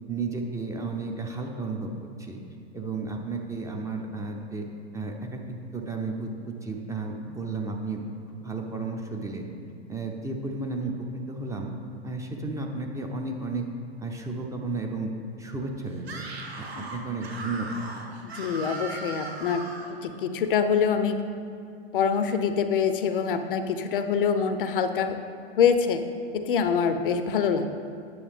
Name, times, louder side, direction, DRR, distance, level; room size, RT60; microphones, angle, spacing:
voice 1, 0.1-1.9 2.2-2.4 2.7-4.7 4.9-5.4 5.7-9.5 9.9-11.7 12.0-13.6 14.0-15.1 15.4-16.3 16.6-17.8, right 3 dB, 10° right, 1 dB, 0.6 m, -33 dB
Screaming, 16.0-20.0, right 2 dB, 75° right, 1.1 m, -38 dB
voice 2, 18.4-19.6 20.0-21.2 21.9-25.2 25.6-26.0 26.3-27.7, left 6 dB, 55° left, 8 dB, 0.6 m, -25 dB
9.3 x 6.8 x 3.5 m, 2.5 s
figure-of-eight pair, 95°, 31 cm